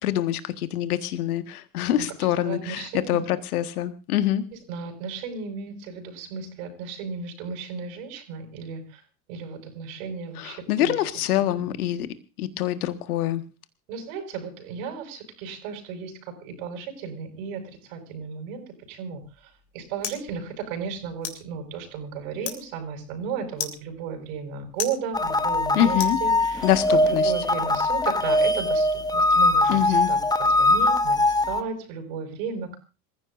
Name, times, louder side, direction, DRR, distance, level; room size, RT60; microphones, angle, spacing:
voice 1, 0.0-4.4 10.4-12.1 12.4-13.4 25.8-26.2 26.6-27.3 29.7-30.1, left 12 dB, 70° left, 11 dB, 1.8 m, -25 dB
voice 2, 1.9-3.2 4.7-9.0 9.3-10.9 11.5-11.7 13.9-19.2 19.7-32.8, right 6 dB, 65° right, 4 dB, 5.8 m, -35 dB
sound 1, 19.2-26.8, left 9 dB, 55° left, 3.8 m, -39 dB
sound 2, 25.1-31.6, left 2 dB, 10° left, 1.1 m, -22 dB
27.0 x 15.0 x 2.6 m, 0.32 s
hypercardioid pair, 80°, 46 cm